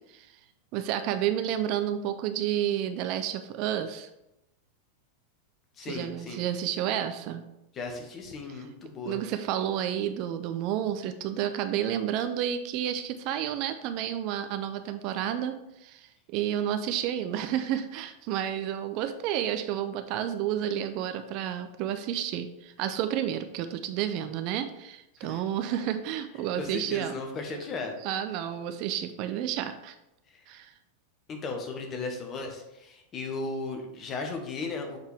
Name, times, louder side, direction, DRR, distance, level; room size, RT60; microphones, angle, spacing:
voice 1, 0.7-4.1 5.8-7.4 9.1-27.2 28.0-30.0 30.5-30.7, right 10 dB, 40° right, 9 dB, 0.4 m, -30 dB
voice 2, 5.8-6.4 7.7-9.2 25.2-25.4 26.6-27.9 30.3-30.4 31.3-35.0, left 3 dB, 25° left, 3 dB, 1.1 m, -36 dB
6.7 x 4.5 x 3.4 m, 0.88 s
figure-of-eight pair, 90°, 0 cm